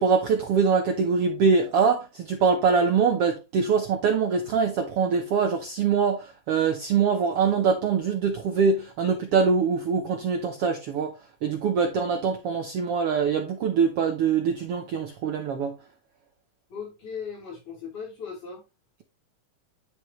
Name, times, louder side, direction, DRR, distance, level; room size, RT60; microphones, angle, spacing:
voice 1, 0.0-15.7, right 5 dB, 70° right, 1.4 m, -23 dB
voice 2, 16.7-18.6, left 6 dB, 65° left, 5.2 m, -37 dB
10.5 x 4.9 x 3.1 m
omnidirectional pair, 3.7 m